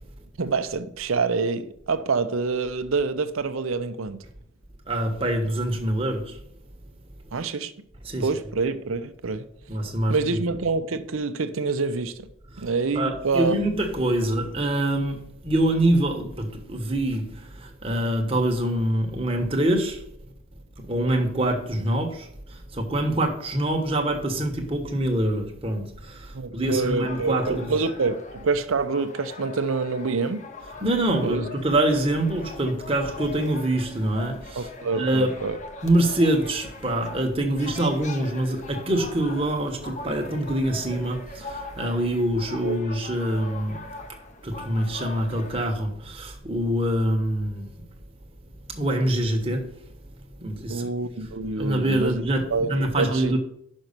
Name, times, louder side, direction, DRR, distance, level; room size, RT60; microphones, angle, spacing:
voice 1, 0.4-4.2 7.3-7.7 8.2-9.5 10.1-12.3 12.6-13.6 26.3-30.5 31.2-31.4 34.6-35.6 42.6-42.8 50.7-53.3, right 4 dB, 75° right, 0.6 m, -26 dB
voice 2, 4.9-6.4 8.0-8.3 9.7-10.4 12.5-12.7 12.9-20.0 20.8-27.8 30.8-34.7 34.9-35.4 35.8-43.8 44.4-47.6 48.8-49.7 50.4-50.9 51.6-53.4, right 1 dB, 25° right, 1.1 m, -25 dB
sound 1, 27.0-45.6, left 3 dB, 35° left, 0.7 m, -41 dB
5.9 x 5.4 x 6.6 m
head